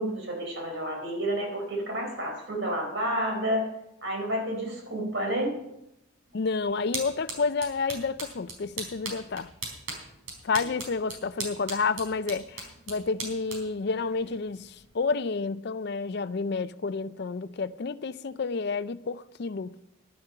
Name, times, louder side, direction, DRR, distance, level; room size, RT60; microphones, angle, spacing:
voice 1, 0.0-3.7 4.0-5.6 10.6-10.7, equal, 60° right, 4.1 m, -30 dB
voice 2, 6.3-9.5 10.4-19.7, left 4 dB, 50° left, 0.4 m, -30 dB
sound 1, 6.3-15.0, right 3 dB, 85° right, 4.5 m, -40 dB
11.5 x 10.5 x 5.5 m
head